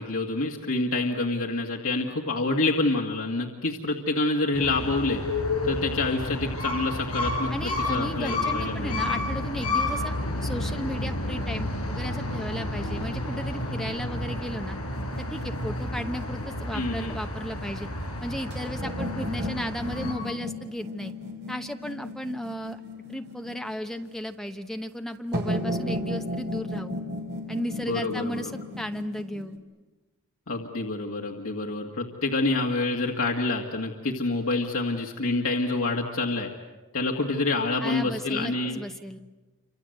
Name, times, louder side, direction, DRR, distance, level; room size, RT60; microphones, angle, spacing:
voice 1, 0.0-5.2 5.6-9.0 16.7-17.2 27.8-28.4 30.5-36.5 36.9-38.8, left 2 dB, 70° left, -1 dB, 2.0 m, -27 dB
sound 1, 4.5-20.1, left 2 dB, 85° left, 7.1 m, -31 dB
voice 2, 7.5-10.1 10.4-14.8 15.3-17.9 18.2-21.1 21.5-22.8 23.1-27.0 27.5-28.5 28.8-29.6 37.8-39.2, equal, ahead, 6 dB, 0.9 m, -34 dB
sound 2, 14.9-17.0 18.5-23.9 25.3-29.6, left 1 dB, 50° right, 3.6 m, -34 dB
28.5 x 26.0 x 8.0 m, 1.2 s
head